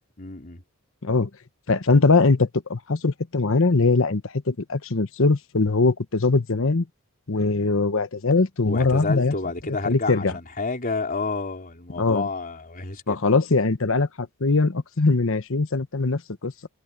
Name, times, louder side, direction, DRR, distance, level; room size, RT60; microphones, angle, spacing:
voice 1, 0.2-0.6 8.6-13.2, left 3 dB, 40° left, 4.1 m, -30 dB
voice 2, 1.7-6.9 7.3-9.3 9.8-10.3 12.0-12.3 13.1-16.5, left 3 dB, 65° left, 1.1 m, -21 dB
head